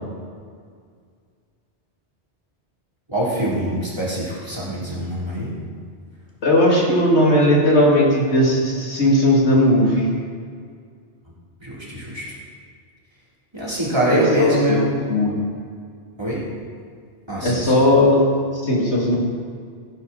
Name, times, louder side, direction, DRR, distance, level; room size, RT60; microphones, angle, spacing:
voice 1, 3.1-5.5 11.6-12.2 13.5-15.0 16.2-16.4 17.3-17.7, right 1 dB, 25° right, -7 dB, 3.5 m, -24 dB
voice 2, 6.4-10.1 14.1-14.8 15.1-15.4 17.4-18.2 18.5-19.2, left 1 dB, 75° left, -4 dB, 3.1 m, -17 dB
15.5 x 10.5 x 4.2 m, 2.1 s
omnidirectional pair, 1.2 m